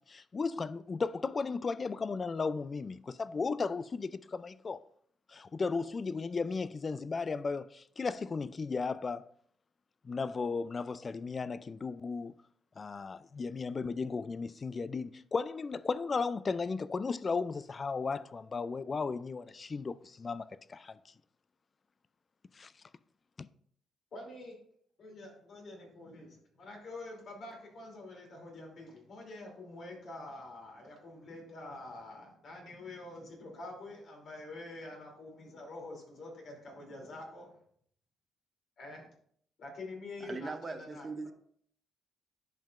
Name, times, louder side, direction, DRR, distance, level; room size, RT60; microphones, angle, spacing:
voice 1, 0.1-4.8 5.3-9.3 10.0-12.4 12.8-21.0 22.5-22.7 23.4-23.5, left 4 dB, 35° left, 0.3 m, -35 dB
voice 2, 24.1-24.5 25.0-37.6 38.8-39.1 39.6-41.1, left 2 dB, 65° left, 2.9 m, -46 dB
voice 3, 40.2-41.3, right 4 dB, 30° right, 0.7 m, -40 dB
10.5 x 5.5 x 2.5 m
cardioid pair, 90°, 0 cm